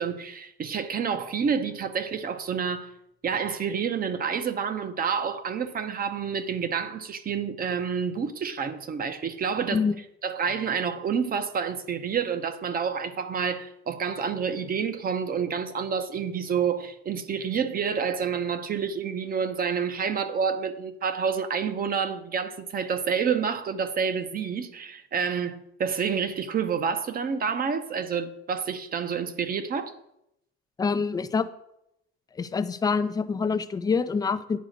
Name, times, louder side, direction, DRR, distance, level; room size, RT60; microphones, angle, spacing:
voice 1, 0.0-2.9 3.2-9.8 10.2-29.9, right 6 dB, 30° right, 0.7 m, -28 dB
voice 2, 30.8-31.5 32.4-34.6, left 5 dB, 15° left, 0.4 m, -26 dB
9.3 x 4.8 x 6.4 m
cardioid pair, 135°, 32 cm